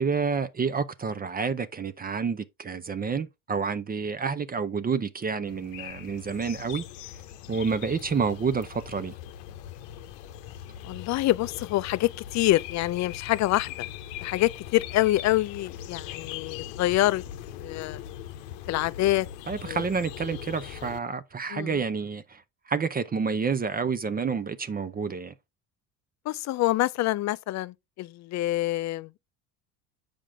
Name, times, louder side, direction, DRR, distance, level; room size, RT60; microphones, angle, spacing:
voice 1, 0.0-6.8 7.5-9.1 19.5-22.4 22.7-25.3, right 5 dB, 25° right, 0.6 m, -29 dB
sound 1, 5.5-21.0, left 11 dB, 85° left, 0.8 m, -40 dB
voice 2, 10.8-13.9 14.2-17.2 17.6-18.0 18.7-19.3 19.6-19.9 21.5-21.8 26.3-29.1, left 16 dB, 45° left, 0.4 m, -26 dB
7.4 x 5.2 x 3.4 m
supercardioid pair, 90°, 39 cm